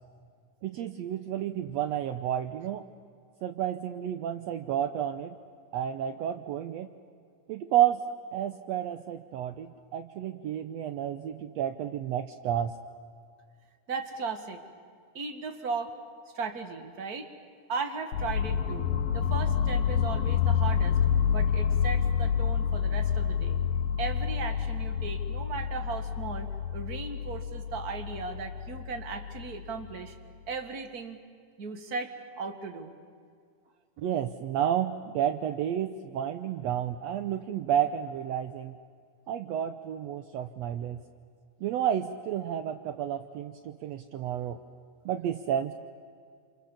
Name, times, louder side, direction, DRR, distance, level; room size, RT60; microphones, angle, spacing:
voice 1, 0.6-2.8 3.4-5.4 5.7-6.9 7.5-8.0 8.3-12.7 34.0-38.7 39.3-41.0 41.6-44.6 45.0-45.7, right 10 dB, 80° right, 9 dB, 1.5 m, -31 dB
voice 2, 13.9-14.6 15.1-15.9 16.4-17.3 17.7-18.9 19.1-21.0 21.3-23.6 24.0-30.1 30.5-31.2 31.6-32.9, right 4 dB, 35° right, 7 dB, 1.8 m, -37 dB
sound 1, 18.1-30.1, left 7 dB, 75° left, 2.7 m, -28 dB
28.5 x 28.5 x 7.3 m, 2.2 s
omnidirectional pair, 4.0 m